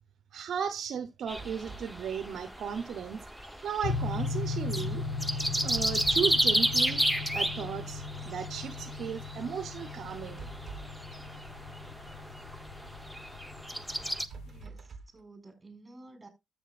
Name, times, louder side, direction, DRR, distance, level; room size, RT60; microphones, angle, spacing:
voice 1, 0.3-3.3 3.6-5.0 5.6-7.0 7.3-10.4, right 7 dB, 65° right, 0.8 m, -35 dB
sound 1, 1.3-14.3, equal, ahead, 0.9 m, -33 dB
sound 2, 1.3-2.0 5.5-6.4 10.1-11.1 14.0-15.2, right 4 dB, 40° right, 1.2 m, -46 dB
sound 3, 3.8-14.6, left 4 dB, 90° left, 1.4 m, -38 dB
voice 2, 14.4-16.3, right 2 dB, 20° right, 4.4 m, -52 dB
13.0 x 7.6 x 2.4 m
cardioid pair, 90°, 0 cm